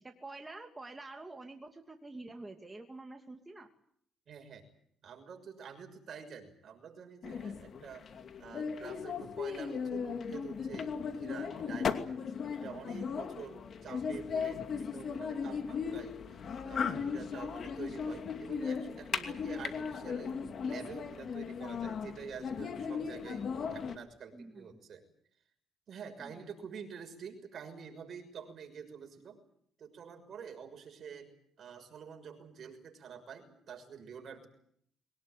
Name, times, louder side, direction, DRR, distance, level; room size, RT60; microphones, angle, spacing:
voice 1, 0.0-3.7 24.3-24.8 26.2-26.5, right 2 dB, 15° right, 4 dB, 2.7 m, -48 dB
voice 2, 4.3-4.6 5.0-8.1 8.4-25.0 25.9-29.4 29.8-31.3 31.6-34.5, right 6 dB, 55° right, 5 dB, 6.3 m, -48 dB
sound 1, 7.2-24.0, left 6 dB, 55° left, 2.6 m, -37 dB
23.0 x 20.0 x 9.3 m, 0.67 s
cardioid pair, 90°, 0 cm